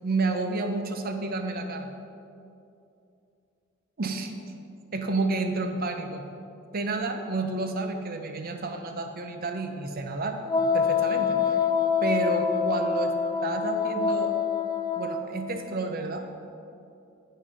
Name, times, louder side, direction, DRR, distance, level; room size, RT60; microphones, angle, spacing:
voice 1, 0.0-1.9 4.0-4.3 4.9-6.2 6.7-10.4 10.7-11.6 12.0-13.1 13.4-14.4 15.0-16.2, right 3 dB, 50° right, 6 dB, 0.7 m, -30 dB
Wind instrument woodwind instrument, 10.5-15.2, left 6 dB, 20° left, 0.3 m, -26 dB
8.5 x 5.5 x 5.3 m, 2.6 s
head